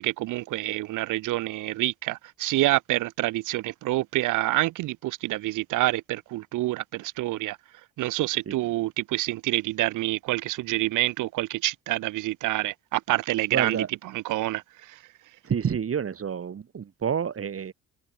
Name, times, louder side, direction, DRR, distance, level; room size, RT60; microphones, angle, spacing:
voice 1, 0.0-7.6 8.0-13.8 14.1-15.0, right 17 dB, 85° right, 1.0 m, -27 dB
voice 2, 13.5-13.9 15.4-17.7, right 7 dB, 50° right, 4.5 m, -29 dB
cardioid pair, 90°, 30 cm